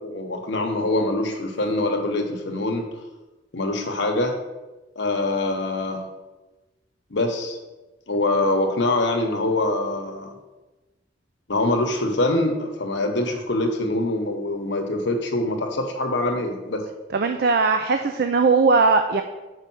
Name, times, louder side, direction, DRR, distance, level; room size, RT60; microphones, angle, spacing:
voice 1, 0.0-2.8 3.5-4.3 5.0-6.0 7.1-7.6 8.1-10.3 11.5-16.8, left 2 dB, 70° left, 4 dB, 1.0 m, -24 dB
voice 2, 17.1-19.2, right 4 dB, 55° right, 6 dB, 0.4 m, -19 dB
5.6 x 5.0 x 6.1 m, 1.1 s
head